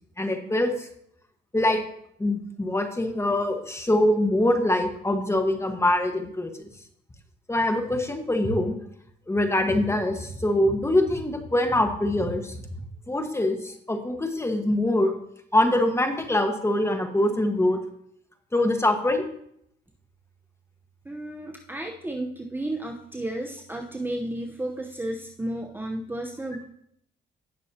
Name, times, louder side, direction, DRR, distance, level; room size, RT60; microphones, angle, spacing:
voice 1, 0.2-0.9 1.5-1.8 2.2-6.5 7.5-8.8 9.3-12.6 13.1-15.1 15.5-17.8 18.5-19.2, left 1 dB, 15° left, 5 dB, 1.4 m, -24 dB
voice 2, 21.0-26.6, right 1 dB, 10° right, 1 dB, 0.9 m, -33 dB
17.5 x 6.2 x 2.8 m, 0.71 s
cardioid pair, 90°, 20 cm